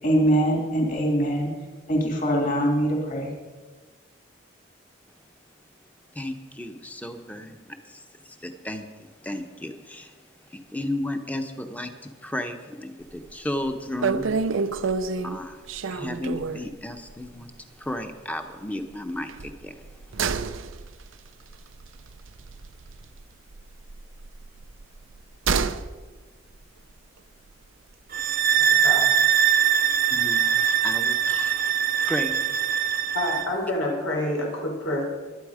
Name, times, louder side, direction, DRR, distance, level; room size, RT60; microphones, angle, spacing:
voice 1, 0.0-1.5 1.9-3.3, right 1 dB, 40° left, -1 dB, 2.8 m, -23 dB
voice 2, 6.1-8.9 9.2-10.1 10.5-14.6 15.2-15.6 15.9-17.5 17.8-19.8 30.1-31.7 31.9-32.6, left 1 dB, 10° left, 6 dB, 1.0 m, -34 dB
sound 1, 13.1-13.4 13.6-13.7 14.0-16.7 17.1-17.3 17.5-17.6 19.3-23.2 23.5-25.9 26.2-26.3, right 5 dB, 80° right, 0.6 m, -29 dB
sound 2, 28.1-33.5, right 9 dB, 45° right, 0.6 m, -22 dB
voice 3, 28.6-29.0 33.1-35.0, left 1 dB, 90° left, -1 dB, 4.7 m, -28 dB
23.0 x 9.2 x 5.1 m, 1.3 s
head